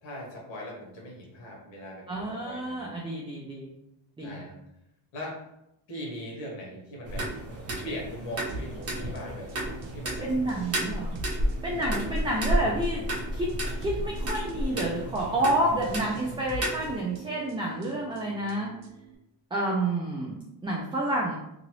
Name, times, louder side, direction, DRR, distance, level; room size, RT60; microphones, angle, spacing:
voice 1, 0.0-2.8 4.2-4.6 5.1-5.5 5.9-7.3 7.8-9.5 9.9-10.3 11.8-12.1, equal, 75° left, -3 dB, 1.4 m, -40 dB
voice 2, 2.1-3.7 4.2-4.4 10.2-11.2 11.6-13.0 13.3-13.5 13.8-18.7 19.5-21.3, right 1 dB, 10° right, -3 dB, 0.3 m, -29 dB
sound 1, 7.0-17.0, right 1 dB, 30° right, 1.0 m, -32 dB
sound 2, 8.5-19.1, right 3 dB, 75° right, 0.7 m, -44 dB
2.9 x 2.5 x 3.0 m, 0.82 s
cardioid pair, 120°, 47 cm